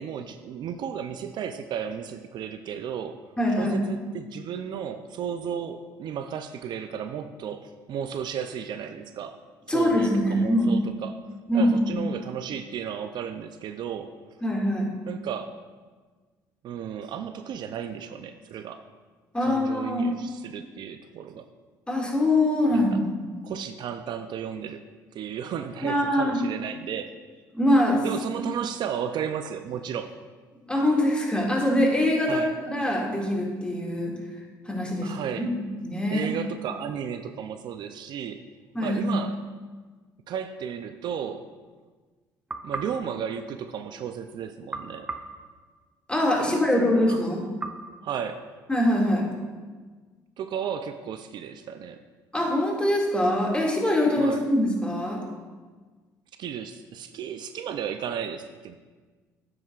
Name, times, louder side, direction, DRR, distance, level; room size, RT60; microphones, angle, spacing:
voice 1, 0.0-3.2 3.6-9.4 9.7-11.2 11.5-14.1 15.0-15.5 16.6-18.8 19.4-21.5 22.7-22.9 23.4-24.9 25.1-27.1 28.0-30.1 32.3-32.5 35.0-35.5 36.1-38.4 38.8-39.4 40.3-41.4 42.6-45.1 46.5-47.2 48.0-48.5 50.4-52.0 54.2-54.5 56.4-58.8, right 8 dB, 60° right, 8 dB, 0.5 m, -34 dB
voice 2, 3.4-3.8 9.7-10.7 11.5-11.9 14.4-14.9 19.3-20.1 21.9-23.3 25.8-26.4 27.5-28.0 28.4-28.5 30.7-34.2 34.7-35.1 35.4-35.5 35.8-36.3 38.7-39.1 46.1-47.5 48.7-49.2 52.3-55.2, left 1 dB, 10° left, -2 dB, 2.1 m, -23 dB
sound 1, 42.5-44.1 44.7-46.3 47.6-49.0, right 3 dB, 15° right, 0.6 m, -40 dB
9.1 x 7.9 x 2.4 m, 1.4 s
supercardioid pair, 70°, 8 cm